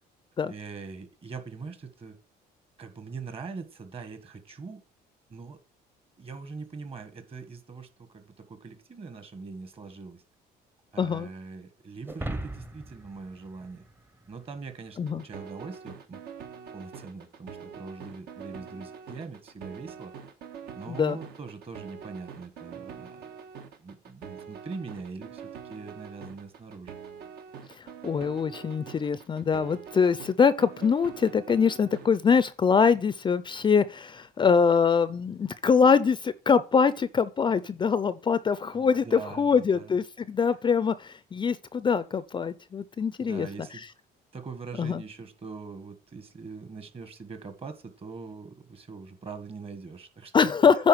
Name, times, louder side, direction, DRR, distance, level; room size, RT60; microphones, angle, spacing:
voice 1, 0.4-2.2 2.8-4.8 5.3-5.6 6.2-10.2 10.9-13.9 14.3-16.2 16.7-20.1 20.7-23.4 23.8-26.9 38.7-39.9 43.2-43.8 44.3-50.5, right 4 dB, 35° right, 1.5 m, -42 dB
voice 2, 11.0-11.3 15.0-15.2 20.9-21.2 27.8-43.5 44.8-45.0 50.3-50.9, left 6 dB, 30° left, 0.5 m, -24 dB
sound 1, 12.0-14.6, right 1 dB, 10° right, 0.8 m, -38 dB
sound 2, 15.0-32.1, right 7 dB, 70° right, 1.5 m, -44 dB
9.6 x 3.9 x 6.3 m
cardioid pair, 110°, 17 cm